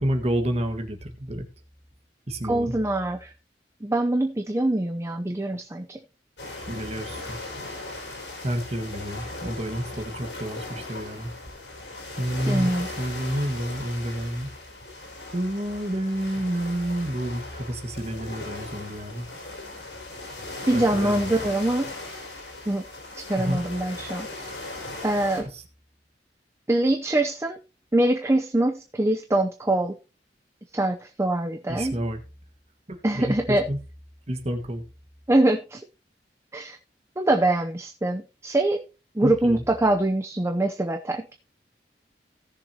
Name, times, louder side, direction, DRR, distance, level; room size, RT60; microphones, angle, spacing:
voice 1, 0.0-1.4 2.3-2.8 6.7-7.4 8.4-11.3 12.2-14.5 15.3-19.3 20.7-21.3 23.4-23.6 25.3-25.6 31.7-32.2 32.9-33.8 34.3-34.8 39.2-39.6, right 1 dB, 40° right, 1.6 m, -29 dB
voice 2, 2.5-3.3 3.8-6.0 12.5-12.9 20.7-21.9 22.7-22.8 23.1-24.6 25.0-25.5 26.7-27.6 27.9-29.9 30.7-32.0 33.0-33.6 35.3-35.8 36.5-36.8 37.2-38.8 39.1-41.2, right 1 dB, 15° right, 0.7 m, -24 dB
sound 1, 6.4-25.4, left 2 dB, 90° left, 5.0 m, -38 dB
17.5 x 6.8 x 2.9 m
head